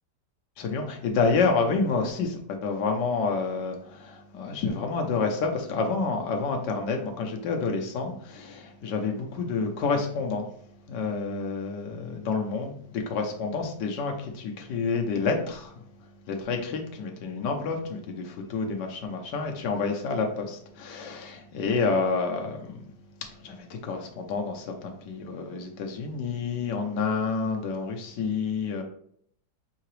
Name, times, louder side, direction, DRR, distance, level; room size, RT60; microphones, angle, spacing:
voice 1, 0.6-10.5 10.9-15.8 16.3-22.8 23.4-28.8, left 4 dB, 80° left, 2 dB, 1.4 m, -29 dB
5.7 x 2.8 x 3.2 m, 0.65 s
omnidirectional pair, 1.8 m